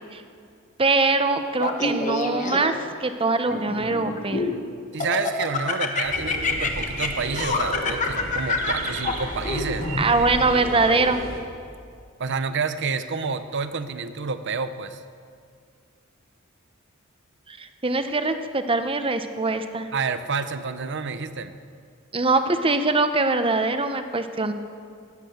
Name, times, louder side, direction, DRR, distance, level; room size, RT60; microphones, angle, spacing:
voice 1, 0.8-2.7 3.0-4.5 10.0-11.2 17.5-19.9 22.1-24.5, right 3 dB, 25° right, 8 dB, 0.9 m, -23 dB
Laughter, 1.6-2.9 3.5-4.6 5.0-10.0, left 3 dB, 35° left, 1.3 m, -27 dB
voice 2, 4.9-9.9 10.2-10.3 12.2-15.0 19.9-21.5, right 5 dB, 55° right, 11 dB, 0.8 m, -29 dB
sound 1, 6.0-11.4, right 1 dB, 75° right, 2.4 m, -33 dB
16.5 x 11.0 x 7.9 m, 2.3 s
head